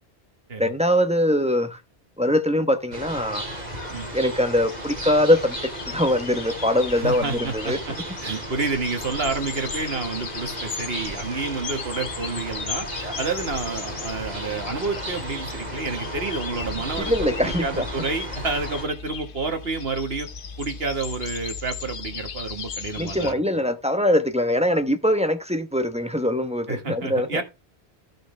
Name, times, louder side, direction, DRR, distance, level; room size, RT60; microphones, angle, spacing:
voice 1, 0.6-1.8 2.2-3.4 4.1-7.8 13.0-13.1 17.0-17.9 23.0-27.4, left 1 dB, 5° right, 0.9 m, -22 dB
sound 1, 2.9-18.8, right 1 dB, 40° right, 2.5 m, -35 dB
sound 2, 3.5-23.3, left 6 dB, 55° left, 0.9 m, -37 dB
voice 2, 7.0-7.9 8.2-20.3 20.6-23.4 26.7-27.4, right 3 dB, 70° right, 1.9 m, -29 dB
14.0 x 6.4 x 3.3 m
omnidirectional pair, 1.1 m